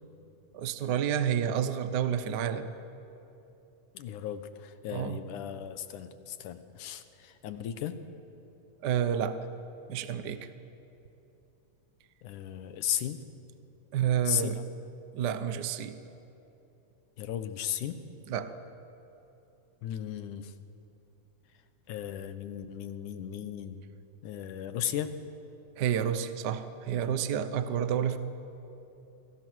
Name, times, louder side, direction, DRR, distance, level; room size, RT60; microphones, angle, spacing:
voice 1, 0.5-2.7 4.9-5.2 8.8-9.5 9.9-10.5 13.9-14.6 15.1-16.0 18.3-18.6 25.8-28.2, right 9 dB, 75° right, 10 dB, 0.9 m, -30 dB
voice 2, 3.9-8.0 12.2-13.2 14.3-14.6 17.2-18.0 19.8-20.5 21.9-23.8 24.2-25.1, left 10 dB, 85° left, 10 dB, 2.6 m, -36 dB
28.5 x 24.5 x 6.3 m, 2.9 s
omnidirectional pair, 3.5 m